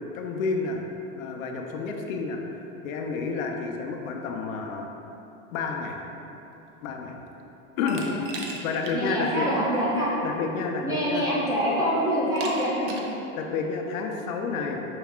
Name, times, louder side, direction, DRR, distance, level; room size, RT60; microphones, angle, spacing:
voice 1, 0.1-0.8 1.2-4.9 5.5-6.0 6.8-7.2 7.8-8.1 8.6-9.5 10.2-11.3 13.4-14.8, left 4 dB, 80° left, 2 dB, 0.6 m, -30 dB
voice 2, 7.8-8.2 8.9-10.1 10.8-12.9, equal, 10° right, -8 dB, 0.4 m, -26 dB
Glass, 7.9-9.0 9.4-9.5 10.6-10.7 11.2-11.6 12.4-13.2, right 3 dB, 55° right, 0.6 m, -38 dB
5.3 x 2.3 x 3.5 m, 2.9 s
supercardioid pair, 140°, 40 cm